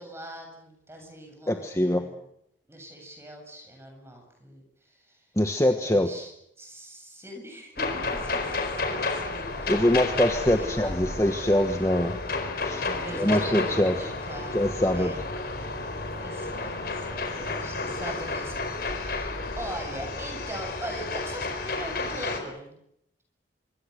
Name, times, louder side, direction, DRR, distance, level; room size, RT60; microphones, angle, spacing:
voice 1, 0.0-2.2 2.7-5.3 5.8-6.3 6.6-9.9 10.5-11.3 12.8-15.3 16.2-22.8, right 1 dB, 15° right, 3 dB, 7.6 m, -41 dB
voice 2, 1.5-2.0 5.4-6.1 9.7-12.2 12.6-12.9 13.1-14.1 14.5-15.1, left 1 dB, 15° left, 6 dB, 1.3 m, -23 dB
sound 1, 7.8-22.4, left 3 dB, 50° left, 4.5 m, -31 dB
25.5 x 24.0 x 6.7 m, 0.74 s
head